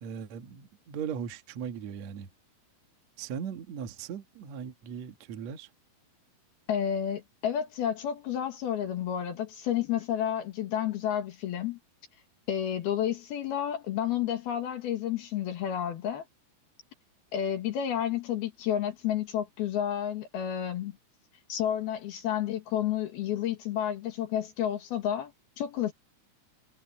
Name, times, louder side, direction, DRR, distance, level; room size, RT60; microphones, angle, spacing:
voice 1, 0.0-2.3 3.2-5.7, right 7 dB, 55° right, 2.2 m, -38 dB
voice 2, 6.7-11.8 12.5-16.3 17.3-21.0 21.5-25.3 25.6-25.9, left 10 dB, 65° left, 3.5 m, -30 dB
omnidirectional pair, 4.9 m